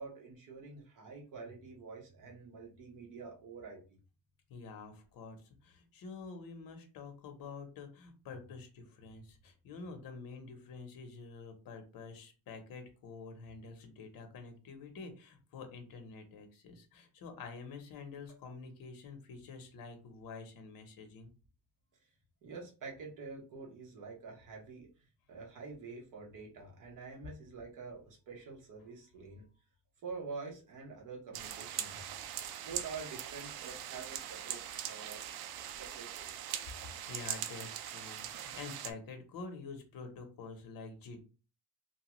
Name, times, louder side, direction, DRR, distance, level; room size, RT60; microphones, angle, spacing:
voice 1, 0.0-3.8 18.3-18.4 22.4-24.9 25.3-29.4 30.0-32.2 32.6-36.5, right 4 dB, 55° right, -1 dB, 1.2 m, -47 dB
voice 2, 4.5-5.4 5.6-21.3 37.1-41.2, left 4 dB, 60° left, 6 dB, 0.8 m, -48 dB
sound 1, 31.3-38.9, right 10 dB, 75° right, 0.5 m, -41 dB
2.9 x 2.3 x 3.0 m, 0.34 s
cardioid pair, 150°, 38 cm